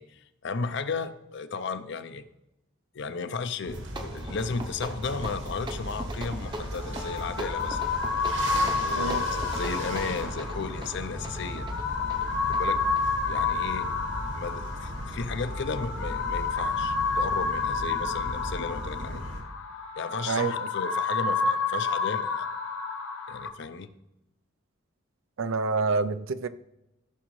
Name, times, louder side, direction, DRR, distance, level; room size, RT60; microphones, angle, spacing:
voice 1, 0.0-2.2 2.9-7.9 8.8-11.7 12.5-12.8 13.3-13.9 14.3-19.3 20.0-22.5 23.3-23.9, left 4 dB, 60° left, 0.5 m, -34 dB
sound 1, 3.6-13.9, right 1 dB, 20° right, 0.7 m, -41 dB
sound 2, 3.7-19.4, right 1 dB, 60° right, 1.5 m, -37 dB
sound 3, 6.5-23.5, left 4 dB, 85° left, 0.9 m, -30 dB
voice 2, 25.4-26.5, right 4 dB, 80° right, 0.5 m, -27 dB
15.0 x 6.2 x 3.2 m
head